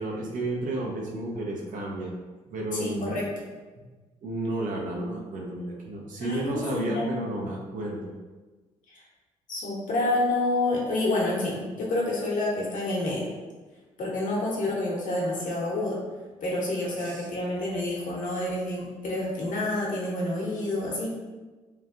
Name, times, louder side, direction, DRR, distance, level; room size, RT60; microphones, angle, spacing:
voice 1, 0.0-2.1 2.5-3.2 3.8-3.9 4.2-8.1 17.0-17.3, right 1 dB, 50° right, -1 dB, 0.7 m, -32 dB
voice 2, 2.8-3.3 6.2-7.2 8.9-9.0 9.5-13.3 14.0-16.0 16.4-21.1, left 2 dB, 50° left, -4 dB, 0.9 m, -28 dB
3.1 x 2.4 x 2.4 m, 1.3 s
hypercardioid pair, 50°, 17 cm